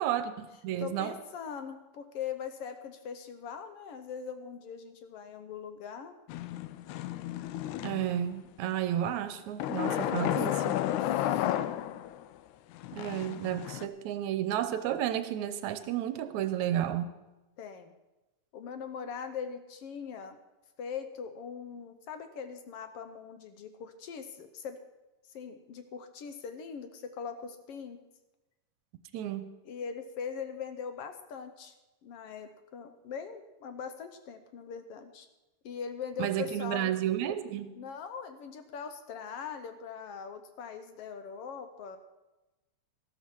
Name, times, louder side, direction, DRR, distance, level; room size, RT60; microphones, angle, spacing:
voice 1, 0.0-1.1 7.8-10.6 12.9-17.1 29.1-29.5 36.2-37.8, right 11 dB, 80° right, 11 dB, 2.1 m, -32 dB
voice 2, 0.8-6.1 9.8-11.6 17.6-17.9 18.5-20.4 20.8-24.8 25.3-28.0 29.6-31.7 32.0-35.3 35.6-36.9 37.8-42.0, left 6 dB, 65° left, 8 dB, 1.6 m, -41 dB
sound 1, 6.3-8.3 9.6-12.2 12.8-13.9, left 13 dB, 85° left, 2.0 m, -32 dB
13.5 x 13.0 x 4.6 m, 1.0 s
omnidirectional pair, 3.4 m